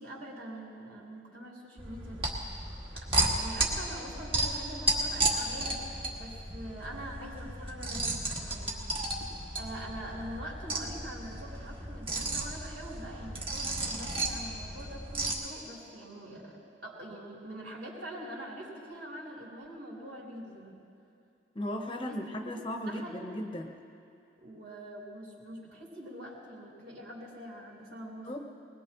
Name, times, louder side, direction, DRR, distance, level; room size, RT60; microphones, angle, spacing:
voice 1, 0.0-2.6 2.9-5.9 6.1-8.7 9.5-20.7 22.1-22.4 22.9-23.3 24.4-28.4, right 1 dB, 70° right, -5 dB, 3.8 m, -44 dB
sound 1, 1.8-15.3, right 2 dB, 30° right, 1.7 m, -33 dB
voice 2, 21.5-23.7 28.3-28.4, left 1 dB, 30° left, 3 dB, 1.0 m, -36 dB
21.0 x 20.5 x 3.1 m, 2.6 s
head